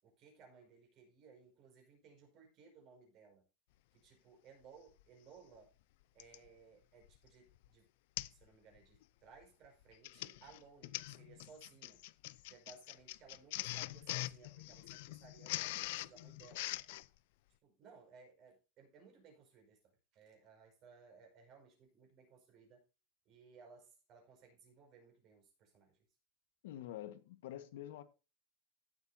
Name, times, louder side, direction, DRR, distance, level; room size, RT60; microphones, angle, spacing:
voice 1, 0.0-3.4 3.9-5.7 6.1-7.9 8.3-12.0 12.5-16.9 17.6-22.8 23.3-26.1, right 5 dB, 35° right, 5.2 m, -61 dB
Printer, 5.0-5.1 6.2-6.5 7.0-7.3 7.6-7.7 8.2-8.4 8.8-9.0 9.8-17.1, left 19 dB, 60° left, 0.5 m, -43 dB
voice 2, 26.6-28.0, left 12 dB, 75° left, 1.4 m, -47 dB
16.0 x 8.1 x 2.7 m
supercardioid pair, 175°, 0 cm